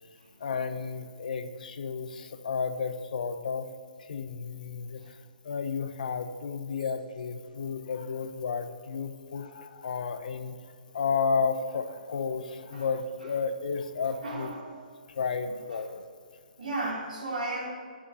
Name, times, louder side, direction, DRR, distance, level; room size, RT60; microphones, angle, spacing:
voice 1, 0.4-3.7 4.0-5.2 5.4-10.6 10.9-14.5 15.1-16.0, left 5 dB, 65° left, 10 dB, 0.9 m, -32 dB
voice 2, 14.2-14.8 16.6-17.7, right 2 dB, 70° right, -2 dB, 3.4 m, -34 dB
8.9 x 8.6 x 6.9 m, 2.1 s
figure-of-eight pair, 130°, 5 cm